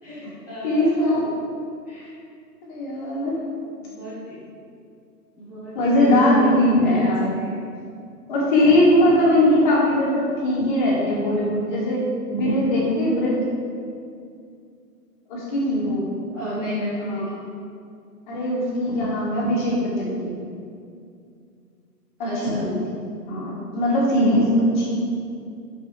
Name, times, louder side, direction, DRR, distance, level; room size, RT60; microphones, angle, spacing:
voice 1, 0.0-0.9 1.9-2.1 3.8-4.4 5.4-6.5 6.9-7.5 16.3-17.2 22.2-22.6, equal, 5° right, -16 dB, 1.1 m, -33 dB
voice 2, 0.6-1.2 2.6-3.4 5.7-7.3 8.3-12.0 12.3-13.3 15.3-16.1 17.1-17.3 18.3-20.3 22.2-22.8 23.3-24.9, left 1 dB, 30° left, -5 dB, 1.9 m, -20 dB
12.0 x 4.8 x 3.4 m, 2.4 s
hypercardioid pair, 150°, 50 cm